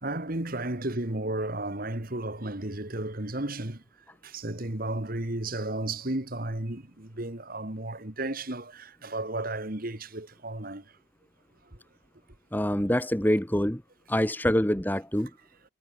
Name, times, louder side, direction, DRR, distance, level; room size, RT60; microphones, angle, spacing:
voice 1, 0.0-3.8 4.2-10.8, right 2 dB, 45° right, 2.1 m, -33 dB
voice 2, 12.5-13.8 14.1-15.3, equal, 10° left, 1.3 m, -25 dB
head